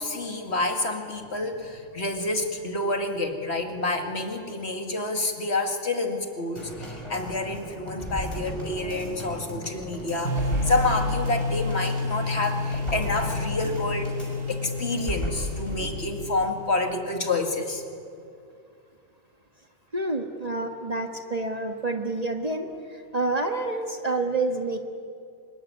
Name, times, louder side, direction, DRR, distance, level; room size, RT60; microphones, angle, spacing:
voice 1, 0.0-14.1 14.5-17.8, left 2 dB, 55° left, 4 dB, 2.5 m, -28 dB
sound 1, 6.6-16.0 16.3-16.4, equal, 20° left, 6.2 m, -35 dB
sound 2, 10.3-17.1, left 3 dB, 75° right, 1.9 m, -30 dB
voice 2, 19.9-22.7 23.1-24.8, right 2 dB, 30° right, 4 dB, 1.6 m, -28 dB
25.0 x 22.0 x 10.0 m, 2.4 s
omnidirectional pair, 1.4 m